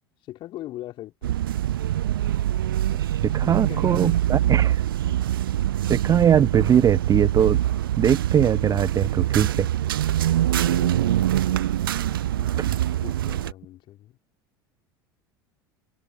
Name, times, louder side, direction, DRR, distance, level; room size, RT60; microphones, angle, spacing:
voice 1, 0.2-1.5 3.4-4.1 5.1-5.2 10.5-11.3 11.9-12.7 13.0-14.2, left 15 dB, 45° left, 4.1 m, -41 dB
sound 1, 1.2-13.5, right 12 dB, 65° right, 0.8 m, -24 dB
voice 2, 3.0-4.8 5.9-7.6 8.0-9.7 12.6-12.8, right 9 dB, 30° right, 0.8 m, -21 dB
figure-of-eight pair, 75°, 12 cm